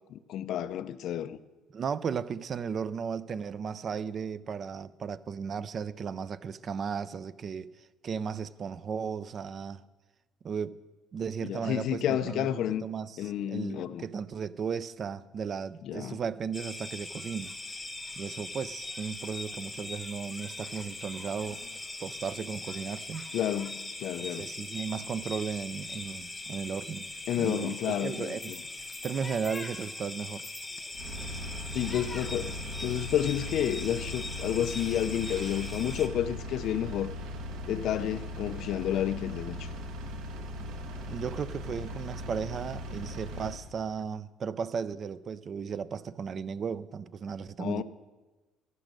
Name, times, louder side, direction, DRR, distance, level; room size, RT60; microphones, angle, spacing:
voice 1, 0.0-1.4 11.4-12.9 13.2-14.0 15.8-16.2 23.3-24.5 27.3-28.6 31.7-32.5 32.8-37.1 37.7-39.7 47.6-47.8, left 10 dB, 45° left, 0.5 m, -30 dB
voice 2, 1.7-9.8 10.4-10.8 11.1-17.5 18.2-21.6 22.0-23.3 24.2-27.1 27.4-28.5 28.8-30.5 41.1-47.8, right 6 dB, 30° right, 0.4 m, -35 dB
sound 1, 16.5-36.1, left 2 dB, 5° left, 0.8 m, -41 dB
Engine, 30.9-43.6, left 1 dB, 55° right, 1.4 m, -39 dB
sound 2, 35.1-36.1 36.9-38.6, right 6 dB, 80° right, 1.6 m, -56 dB
17.0 x 6.3 x 7.6 m
cardioid pair, 175°, 0 cm